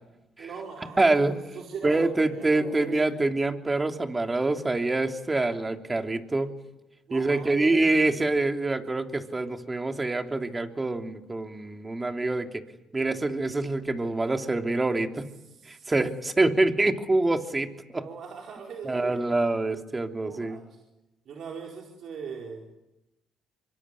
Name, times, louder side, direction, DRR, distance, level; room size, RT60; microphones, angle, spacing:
voice 1, 0.4-3.2 7.1-8.0 15.4-15.9 17.9-19.2 20.1-20.8 21.2-22.6, right 6 dB, 65° right, 0 dB, 4.9 m, -40 dB
voice 2, 1.0-1.4 1.8-6.5 7.1-12.5 12.9-15.3 15.7-18.0 18.8-20.6, right 2 dB, 20° right, 5 dB, 3.3 m, -26 dB
25.5 x 23.5 x 9.9 m, 0.95 s
supercardioid pair, 70°, 0 cm